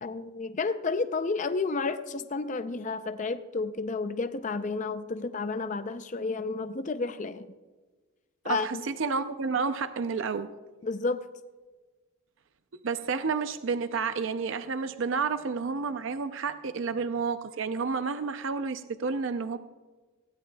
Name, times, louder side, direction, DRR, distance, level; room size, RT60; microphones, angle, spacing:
voice 1, 0.0-7.5 8.5-8.8 10.8-11.2, left 4 dB, 35° left, 10 dB, 0.5 m, -31 dB
voice 2, 8.4-10.5 12.8-19.6, right 5 dB, 65° right, 10 dB, 0.5 m, -30 dB
19.0 x 16.5 x 2.3 m, 1.3 s
head